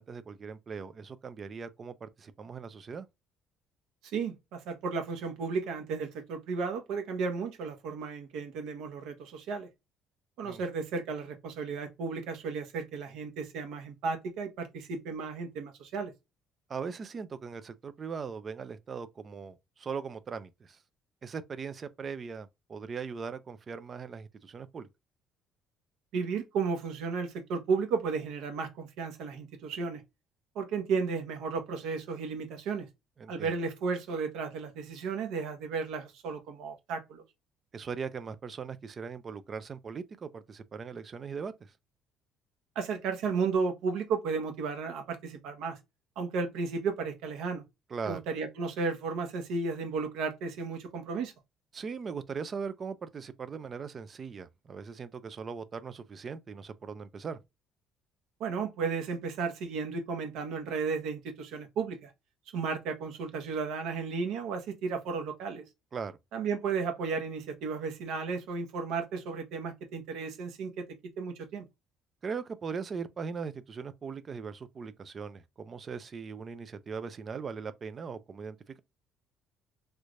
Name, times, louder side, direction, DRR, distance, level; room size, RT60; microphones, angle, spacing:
voice 1, 0.0-3.1 10.4-10.6 16.7-20.8 21.2-24.9 33.2-33.5 37.7-41.7 47.9-48.2 51.7-57.4 65.9-66.2 72.2-78.8, right 5 dB, 25° right, 0.4 m, -39 dB
voice 2, 4.1-9.7 10.4-16.1 26.1-30.0 30.5-32.9 33.3-37.2 42.7-45.8 46.2-47.6 48.1-51.3 58.4-62.1 62.5-65.6 66.3-70.8 71.2-71.6, right 5 dB, 75° right, 1.0 m, -34 dB
3.2 x 3.1 x 2.5 m
cardioid pair, 170°, 0 cm